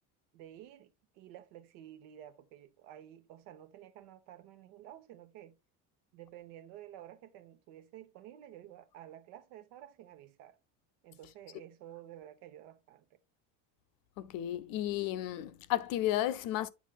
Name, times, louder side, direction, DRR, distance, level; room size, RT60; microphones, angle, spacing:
voice 1, 0.3-5.6 6.1-10.6 11.0-13.2, right 12 dB, 75° right, 1.1 m, -52 dB
voice 2, 14.2-16.7, left 13 dB, 50° left, 0.6 m, -33 dB
8.3 x 4.9 x 2.3 m
cardioid pair, 130°, 45 cm